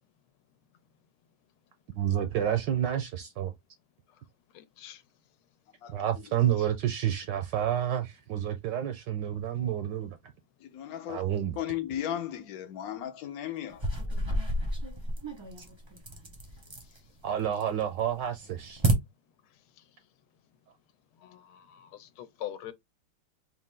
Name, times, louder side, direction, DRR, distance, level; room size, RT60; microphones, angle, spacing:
voice 1, 1.9-3.5 5.9-10.2 11.1-11.6 15.6-15.7 17.2-18.8, right 10 dB, 75° right, 1.1 m, -29 dB
voice 2, 4.5-5.0 21.2-22.7, left 12 dB, 85° left, 1.5 m, -43 dB
voice 3, 10.7-11.2 11.6-13.8, left 11 dB, 60° left, 1.0 m, -35 dB
sound 1, 13.7-17.0 17.4-17.9 18.2-18.9, right 1 dB, 20° right, 0.7 m, -30 dB
4.1 x 2.5 x 3.7 m
omnidirectional pair, 2.3 m